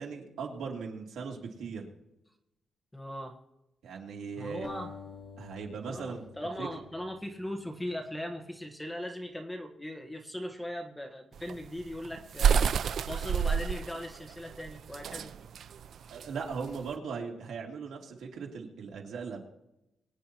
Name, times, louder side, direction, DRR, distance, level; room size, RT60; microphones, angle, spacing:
voice 1, 0.0-1.9 3.8-4.7 5.4-6.2 6.6-6.7 16.1-19.4, right 5 dB, 80° right, 0 dB, 2.6 m, -38 dB
voice 2, 2.9-3.4 4.4-4.9 5.9-15.3, equal, 5° left, 3 dB, 1.2 m, -39 dB
sound 1, 4.6-7.9, left 5 dB, 35° left, 2.9 m, -48 dB
sound 2, 11.3-16.9, right 7 dB, 55° right, 0.4 m, -29 dB
24.0 x 9.6 x 2.9 m, 0.91 s
wide cardioid pair, 175°, 0 cm